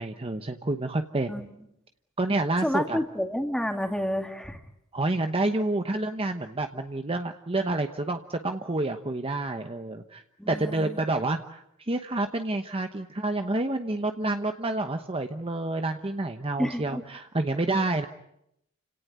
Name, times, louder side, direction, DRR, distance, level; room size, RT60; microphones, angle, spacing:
voice 1, 0.0-1.4 2.2-3.0 4.9-18.1, right 2 dB, 25° right, 6 dB, 1.0 m, -29 dB
voice 2, 2.6-4.6 10.4-11.0 16.6-17.0, equal, 5° left, 5 dB, 2.4 m, -29 dB
29.5 x 17.5 x 9.4 m, 0.82 s
head